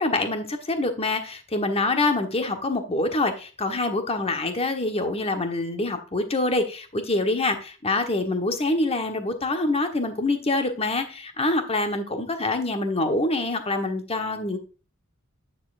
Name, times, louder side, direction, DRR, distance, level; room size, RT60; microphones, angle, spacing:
voice 1, 0.0-14.6, left 2 dB, 30° left, 6 dB, 1.3 m, -25 dB
9.5 x 7.3 x 2.6 m, 0.33 s
head